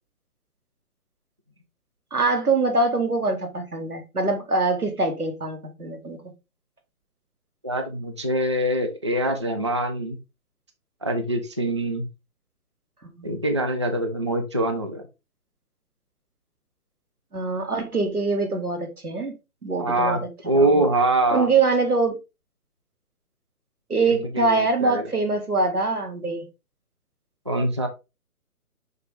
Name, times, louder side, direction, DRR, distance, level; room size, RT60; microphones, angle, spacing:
voice 1, 2.1-6.2 13.0-13.3 17.3-19.3 19.6-20.3 20.5-20.8 21.3-22.1 23.9-26.4, right 3 dB, 90° right, 2.4 m, -24 dB
voice 2, 7.6-10.2 11.0-12.1 13.2-15.1 19.8-20.2 20.5-21.5 24.3-25.1 27.5-27.9, right 1 dB, 20° right, 0.4 m, -24 dB
5.9 x 5.8 x 3.4 m
figure-of-eight pair, 135°, 44 cm